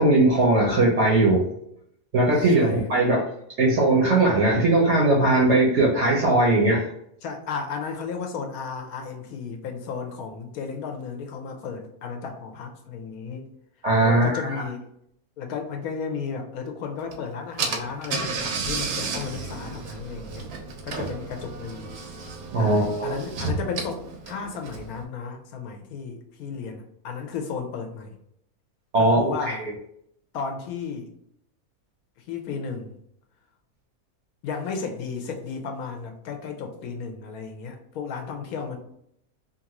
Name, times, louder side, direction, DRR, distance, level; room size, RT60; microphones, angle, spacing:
voice 1, 0.0-1.4 2.1-3.2 3.6-6.9 13.8-14.6 22.5-23.1 28.9-29.7, right 2 dB, 60° right, -2 dB, 0.8 m, -20 dB
voice 2, 2.3-3.0 7.2-13.5 14.0-14.9 15.4-20.5 20.8-21.9 22.6-28.1 29.0-29.6 30.3-31.1 32.3-32.9 34.4-38.8, left 5 dB, 75° left, 4 dB, 1.0 m, -34 dB
Car / Engine, 17.1-17.2 17.6-25.0, right 4 dB, 80° right, 1.1 m, -32 dB
2.9 x 2.5 x 2.9 m, 0.72 s
omnidirectional pair, 1.6 m